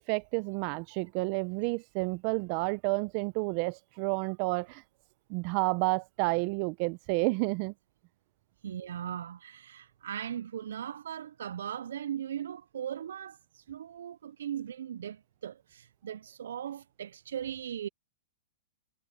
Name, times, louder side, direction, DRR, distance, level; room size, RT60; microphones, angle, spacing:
voice 1, 0.0-4.8 5.3-7.7, right 27 dB, 45° right, 0.7 m, -30 dB
voice 2, 8.6-17.9, right 9 dB, 80° right, 0.3 m, -38 dB
hypercardioid pair, 140°, 0 cm